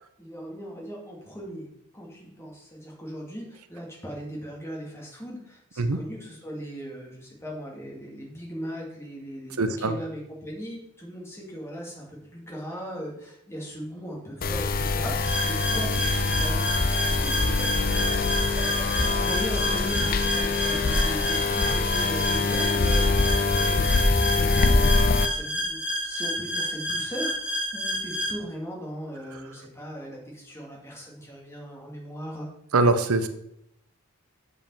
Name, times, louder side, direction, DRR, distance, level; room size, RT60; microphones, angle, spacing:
voice 1, 0.2-1.7 1.9-32.5, equal, 10° left, -2 dB, 2.4 m, -39 dB
voice 2, 9.6-9.9 32.7-33.3, right 3 dB, 75° right, 10 dB, 0.7 m, -22 dB
sound 1, 14.4-25.3, left 3 dB, 40° left, 0.6 m, -24 dB
sound 2, 15.2-28.3, equal, 5° right, 1.1 m, -30 dB
7.6 x 4.9 x 7.1 m, 0.78 s
head